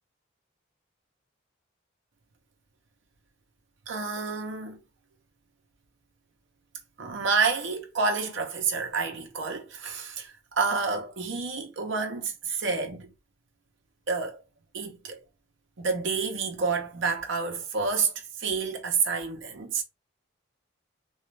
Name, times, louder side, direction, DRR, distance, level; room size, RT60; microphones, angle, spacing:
voice 1, 3.9-4.8 7.0-13.1 14.1-14.4 14.7-15.2 15.8-19.8, right 4 dB, 70° right, 0.7 m, -29 dB
2.5 x 2.3 x 3.1 m
head